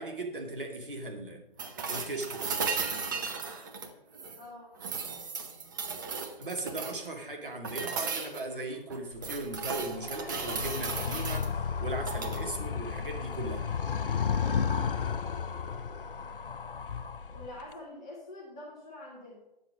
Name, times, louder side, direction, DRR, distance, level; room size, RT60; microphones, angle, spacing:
voice 1, 0.0-1.4 1.9-2.5 6.4-11.5 11.8-13.6, right 2 dB, 65° right, 2 dB, 2.6 m, -38 dB
sound 1, 1.6-4.4 4.8-7.1 7.6-8.4 8.9-11.5 12.0-12.4 14.5-14.6, right 5 dB, 20° right, 0.8 m, -35 dB
voice 2, 4.3-4.8 14.4-14.7 17.3-19.4, left 1 dB, 5° left, -4 dB, 0.5 m, -46 dB
Animal, 9.1-17.7, left 6 dB, 65° left, 0.6 m, -33 dB
9.8 x 7.4 x 5.0 m, 0.96 s
figure-of-eight pair, 140°, 29 cm